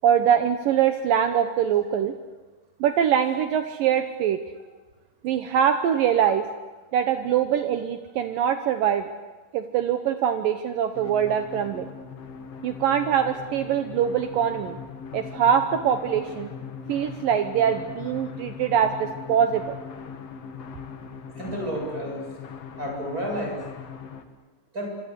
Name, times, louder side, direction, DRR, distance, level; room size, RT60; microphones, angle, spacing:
voice 1, 0.0-2.1 2.8-4.4 5.2-6.5 6.9-9.1 9.5-11.9 12.6-14.8 15.1-16.5 16.9-19.8, right 9 dB, 90° right, 7 dB, 1.9 m, -23 dB
sound 1, 10.9-24.2, left 6 dB, 80° left, 1.4 m, -40 dB
voice 2, 21.3-22.3 22.8-23.6 24.7-24.9, equal, 15° right, 1 dB, 7.8 m, -31 dB
26.0 x 25.5 x 8.2 m, 1.3 s
omnidirectional pair, 5.5 m